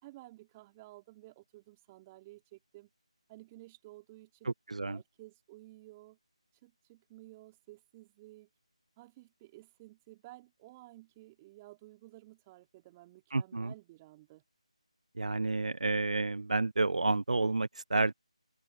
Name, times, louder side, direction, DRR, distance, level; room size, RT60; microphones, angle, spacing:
voice 1, 0.0-2.9 3.3-4.5 4.9-6.2 6.6-8.5 9.0-14.4, right 18 dB, 15° right, 3.7 m, -54 dB
voice 2, 4.4-5.0 13.3-13.7 15.2-18.1, right 3 dB, 75° right, 0.4 m, -30 dB
figure-of-eight pair, 160°, 4 cm